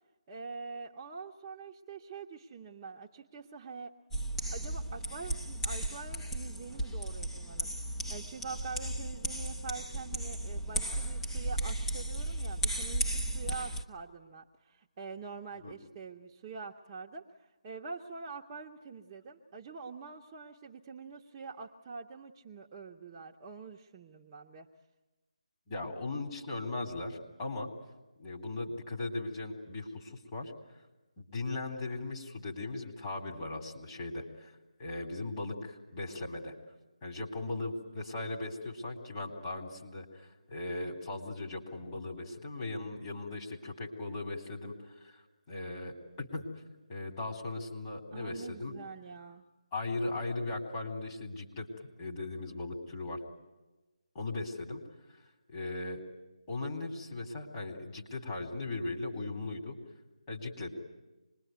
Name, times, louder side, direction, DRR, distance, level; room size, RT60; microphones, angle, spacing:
voice 1, 0.3-3.9 4.5-24.7 48.1-49.4, right 4 dB, 20° right, -1 dB, 1.0 m, -45 dB
sound 1, 4.1-13.8, right 1 dB, 5° left, 0.8 m, -35 dB
voice 2, 25.7-27.7 28.2-30.5 31.2-34.5 34.8-36.5 37.0-46.5 46.9-48.7 49.7-51.7 52.0-53.2 54.1-54.8 55.5-56.0 56.5-59.8 60.3-60.7, left 2 dB, 25° left, 0 dB, 3.6 m, -38 dB
26.0 x 21.5 x 9.4 m, 1.1 s
figure-of-eight pair, 160°, 4 cm